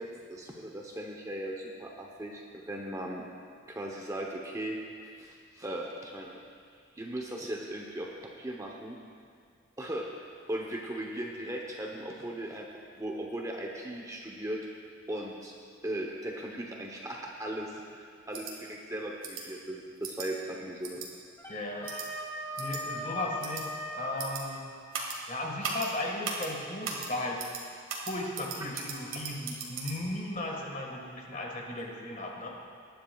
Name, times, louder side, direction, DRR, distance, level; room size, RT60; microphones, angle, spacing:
voice 1, 0.0-3.2 3.7-4.8 5.2-6.4 6.9-9.0 9.8-10.1 10.5-12.7 13.0-14.6 15.1-15.5 15.8-21.0, right 1 dB, 15° right, -1 dB, 0.8 m, -38 dB
sound 1, 18.3-18.5 19.2-19.4 20.0-20.3 20.8-21.1 21.9-22.1 22.6-22.8 23.4-23.6 24.2-24.4 24.9-25.2 25.6-25.9 26.2-26.5 26.8-27.1 27.4-27.6 27.9-29.9, right 5 dB, 75° right, 1.8 m, -37 dB
Wind instrument woodwind instrument, 21.4-24.5, equal, 15° left, 1.7 m, -38 dB
voice 2, 21.5-22.0 22.6-24.7 25.3-27.5 28.1-32.5, left 1 dB, 40° left, -1 dB, 1.6 m, -36 dB
20.0 x 10.0 x 2.3 m, 2.2 s
head